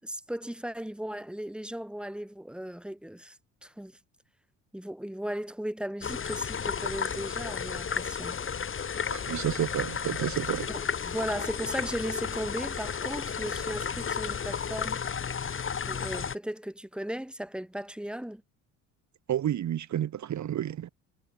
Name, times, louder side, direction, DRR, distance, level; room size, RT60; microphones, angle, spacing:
voice 1, 0.0-3.4 3.6-4.0 4.7-8.4 10.7-15.0 15.9-18.4, equal, ahead, 4.1 m, -36 dB
sound 1, 6.0-16.3, left 6 dB, 30° left, 2.3 m, -33 dB
voice 2, 9.1-10.7 19.3-20.9, right 11 dB, 45° right, 1.7 m, -30 dB
hypercardioid pair, 70°, 38 cm